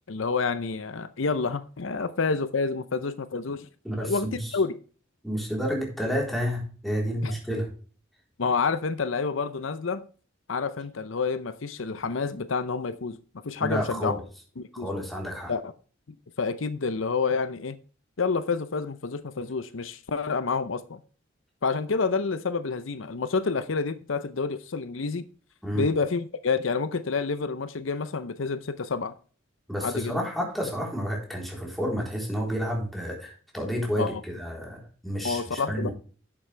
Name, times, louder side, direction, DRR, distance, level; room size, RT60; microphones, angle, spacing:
voice 1, 0.1-3.7 4.0-4.7 7.2-7.3 8.4-10.1 10.5-13.2 13.4-14.2 14.6-14.9 15.5-15.7 16.1-17.8 18.2-21.0 21.6-25.3 25.7-29.1 29.8-30.2 34.0-34.1 35.2-35.9, left 4 dB, 80° left, 0.7 m, -28 dB
voice 2, 3.8-4.5 5.2-7.7 13.6-14.2 14.7-15.5 25.6-25.9 29.7-35.9, equal, ahead, 3.8 m, -30 dB
11.0 x 7.6 x 3.3 m
head